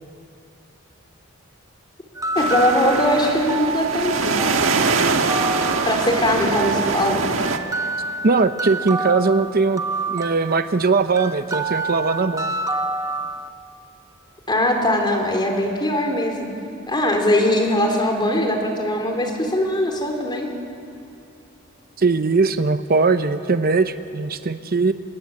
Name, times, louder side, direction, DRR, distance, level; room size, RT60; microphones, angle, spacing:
sound 1, 2.2-13.5, right 3 dB, 15° right, 1.2 m, -28 dB
voice 1, 2.4-4.5 5.9-7.2 14.5-16.5 16.9-20.5, left 1 dB, 25° left, 2 dB, 3.7 m, -21 dB
sound 2, 2.4-7.6, right 4 dB, 80° right, 1.6 m, -23 dB
voice 2, 8.2-9.8 10.1-12.5 22.0-24.9, right 4 dB, 50° right, 10 dB, 0.8 m, -20 dB
29.5 x 19.0 x 8.7 m, 2.6 s
head